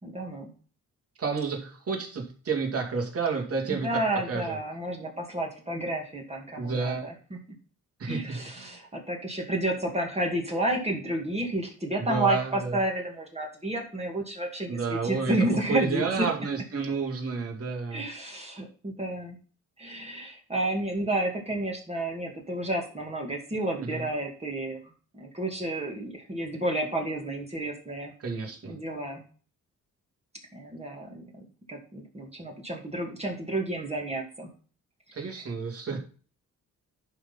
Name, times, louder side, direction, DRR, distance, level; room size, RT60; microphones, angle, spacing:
voice 1, 0.0-0.5 3.7-7.4 8.0-16.1 17.9-19.4 19.8-24.8 25.1-28.1 28.6-29.2 30.5-31.2 31.7-34.5 35.1-35.3, right 1 dB, 20° right, 0 dB, 2.2 m, -31 dB
voice 2, 1.2-4.6 6.6-7.1 8.0-8.8 12.0-12.8 14.7-15.4 15.7-18.0 23.8-24.0 28.2-28.8 35.1-36.0, right 5 dB, 45° right, 1 dB, 2.6 m, -31 dB
11.0 x 4.1 x 5.6 m, 0.40 s
cardioid pair, 130°, 32 cm